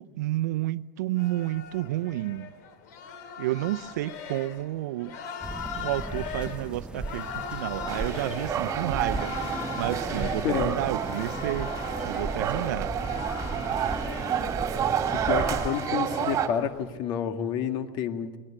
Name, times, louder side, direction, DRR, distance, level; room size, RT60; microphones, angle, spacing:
voice 1, 0.0-2.5 3.4-5.2 5.7-12.9, right 16 dB, 85° right, 0.6 m, -31 dB
sound 1, 1.2-16.9, left 7 dB, 80° left, 2.8 m, -40 dB
sound 2, 5.4-15.7, right 2 dB, 10° right, 0.7 m, -37 dB
sound 3, 7.9-16.5, right 8 dB, 35° right, 2.9 m, -30 dB
voice 2, 15.1-18.3, left 8 dB, 60° left, 1.9 m, -29 dB
20.5 x 19.5 x 8.7 m
supercardioid pair, 115°, 9 cm